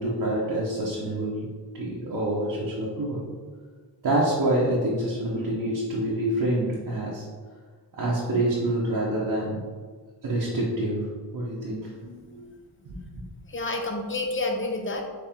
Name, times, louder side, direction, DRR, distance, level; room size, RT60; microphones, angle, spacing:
voice 1, 0.0-1.5 1.7-3.2 4.0-7.3 8.0-9.6 10.2-11.9 12.3-12.5 12.8-13.2, right 1 dB, 55° right, -6 dB, 0.9 m, -27 dB
voice 2, 13.5-15.1, left 2 dB, 30° left, 2 dB, 0.6 m, -30 dB
4.3 x 3.2 x 3.6 m, 1.5 s
wide cardioid pair, 100°, 44 cm